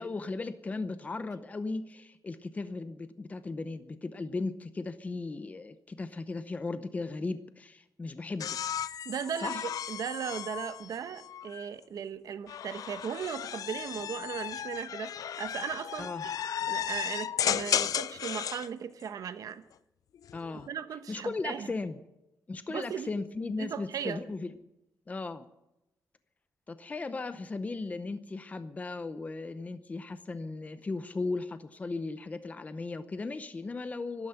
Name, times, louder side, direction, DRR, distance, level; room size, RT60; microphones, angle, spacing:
voice 1, 0.0-8.6 9.4-9.7 16.0-16.2 20.3-20.7 21.1-22.0 22.5-24.5 25.1-25.5 26.7-34.3, left 3 dB, 20° left, 0.7 m, -36 dB
sound 1, 8.4-11.7 12.5-18.7 20.1-20.7, left 9 dB, 60° left, 0.5 m, -34 dB
voice 2, 9.0-16.3 16.7-19.6 20.5-21.7 22.7-23.1 23.6-24.2, right 7 dB, 65° right, 1.0 m, -37 dB
12.5 x 12.5 x 9.0 m
wide cardioid pair, 155°, 7 cm